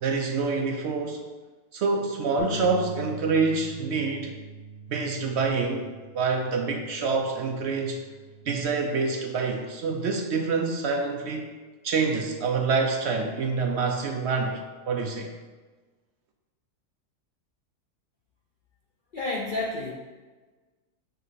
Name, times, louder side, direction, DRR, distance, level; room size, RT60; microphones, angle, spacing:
voice 1, 0.0-1.2 1.7-4.3 4.9-5.9 6.1-8.0 8.5-11.5 11.8-14.6 14.9-15.3, right 4 dB, 70° right, 3 dB, 0.6 m, -26 dB
Bass guitar, 2.4-8.6, right 1 dB, 5° left, 0.9 m, -42 dB
voice 2, 19.1-19.9, left 2 dB, 70° left, -3 dB, 0.4 m, -30 dB
5.7 x 3.2 x 5.5 m, 1.3 s
omnidirectional pair, 1.7 m